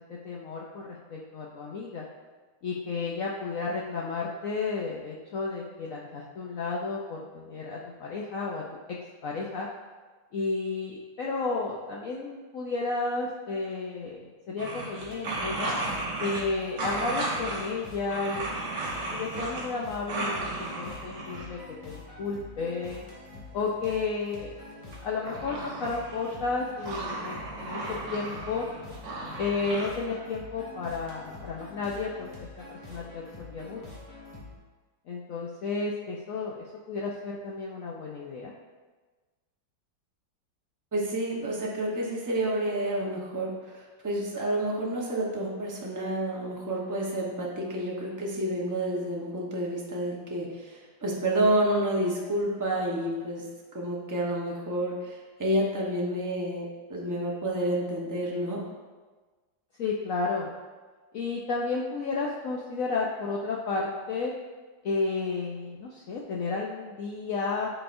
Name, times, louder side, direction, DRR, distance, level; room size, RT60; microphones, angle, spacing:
voice 1, 0.1-2.1 2.6-9.0 9.2-9.7 10.3-15.7 16.2-18.6 19.1-23.1 23.5-24.5 25.0-28.7 29.4-32.3 32.6-33.8 35.1-36.6 36.9-38.5 59.8-60.5 61.1-64.3 64.8-67.7, left 4 dB, 80° left, -2 dB, 0.7 m, -32 dB
sound 1, 14.6-16.4 16.8-17.7 18.1-19.8 20.1-21.5 24.9-26.5 26.8-29.9, right 2 dB, 45° right, 1.2 m, -34 dB
sound 2, 15.0-34.6, left 3 dB, 20° left, 1.1 m, -46 dB
voice 2, 40.9-53.4 53.7-58.6, right 1 dB, 30° right, -3 dB, 0.3 m, -29 dB
11.0 x 4.0 x 2.6 m, 1.3 s
omnidirectional pair, 2.1 m